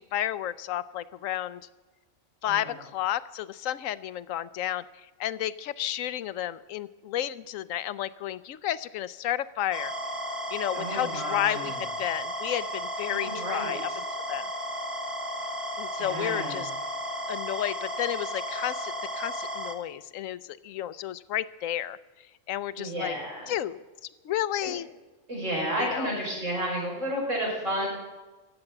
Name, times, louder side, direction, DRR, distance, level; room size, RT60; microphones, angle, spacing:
voice 1, 0.0-1.6 2.4-4.8 5.2-9.9 10.5-13.9 14.3-14.5 15.8-16.7 17.3-22.0 22.5-23.2 23.5-23.8 24.2-24.9 25.8-26.1, left 12 dB, 90° left, 17 dB, 1.0 m, -32 dB
sound 1, 9.7-19.8, equal, 25° right, 1.4 m, -34 dB
voice 2, 10.7-11.7 13.1-13.8 16.0-16.6 22.8-23.5 24.6-24.7 25.3-27.9, right 1 dB, 75° right, -3 dB, 5.9 m, -31 dB
15.0 x 7.9 x 9.7 m, 1.2 s
omnidirectional pair, 1.3 m